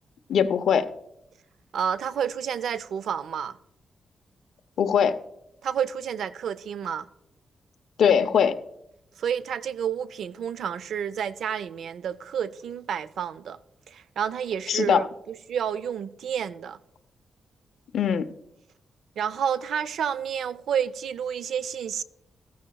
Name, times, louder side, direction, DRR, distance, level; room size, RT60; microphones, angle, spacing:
voice 1, 0.3-0.8 4.8-5.2 8.0-8.6 14.7-15.0 17.9-18.3, left 7 dB, 75° left, 0.6 m, -21 dB
voice 2, 1.7-3.6 5.6-7.1 9.2-13.6 13.9-16.8 19.2-22.0, right 8 dB, 85° right, 0.5 m, -30 dB
14.5 x 14.0 x 2.3 m
wide cardioid pair, 170°, 0 cm